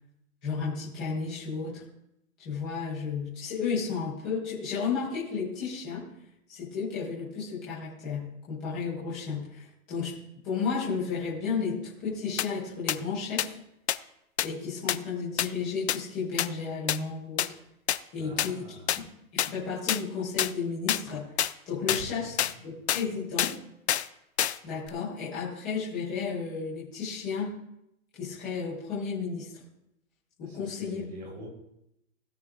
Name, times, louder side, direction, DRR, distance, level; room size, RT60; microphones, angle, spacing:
voice 1, 0.4-1.8 2.4-6.1 6.5-10.2 10.4-13.6 14.4-17.6 18.1-19.1 19.3-22.3 22.6-23.5 24.6-27.5 28.2-29.5 30.4-31.1, left 5 dB, 5° left, -9 dB, 0.5 m, -33 dB
sound 1, 12.4-12.5 12.9-13.0 13.4-13.5 13.9-14.0 14.4-14.5 14.9-15.0 15.4-15.5 15.9-16.0 16.4-16.5 16.9-17.0 17.4-17.5 17.9-18.0 18.4-18.5 18.9-19.0 19.4-19.5 19.9-20.0 20.4-20.5 20.9-21.0 21.4-21.5 21.9-22.0 22.4-22.5 22.9-23.0 23.4-23.5 23.9-24.1 24.4-24.6 24.9-25.0, left 10 dB, 55° left, 0.5 m, -26 dB
voice 2, 18.2-18.9 21.9-22.5 30.4-31.5, equal, 30° right, -1 dB, 4.0 m, -44 dB
16.5 x 9.4 x 2.4 m, 0.82 s
hypercardioid pair, 170°, 42 cm